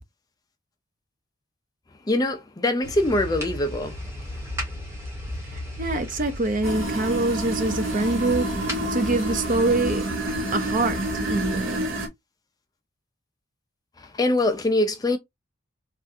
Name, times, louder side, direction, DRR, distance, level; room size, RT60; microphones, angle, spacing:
voice 1, 2.1-4.0 14.0-15.2, left 1 dB, 20° left, 0.4 m, -23 dB
sound 1, 2.8-11.6, left 1 dB, 15° right, 1.0 m, -35 dB
voice 2, 5.5-8.5 8.9-10.0 10.5-11.9, right 2 dB, 40° right, 0.5 m, -25 dB
sound 2, 6.6-12.1, right 1 dB, 75° right, 0.9 m, -28 dB
3.4 x 2.4 x 2.6 m
head